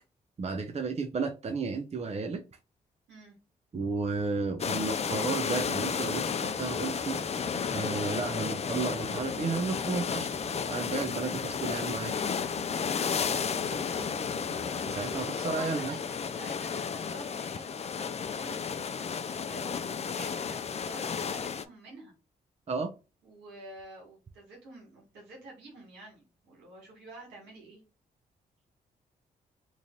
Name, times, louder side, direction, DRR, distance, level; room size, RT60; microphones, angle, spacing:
voice 1, 0.4-2.4 3.7-7.2 7.7-10.3 10.7-12.1 14.9-15.9 22.7-22.9, right 4 dB, 40° right, 6 dB, 0.6 m, -33 dB
sound 1, 3.8-15.2, right 3 dB, 70° right, 1.0 m, -48 dB
sound 2, 4.6-21.6, left 6 dB, 40° left, 0.4 m, -33 dB
voice 2, 13.9-14.2 15.1-22.1 23.2-27.8, right 2 dB, 90° right, -1 dB, 1.7 m, -49 dB
3.1 x 2.6 x 3.7 m, 0.31 s
supercardioid pair, 50°, 17 cm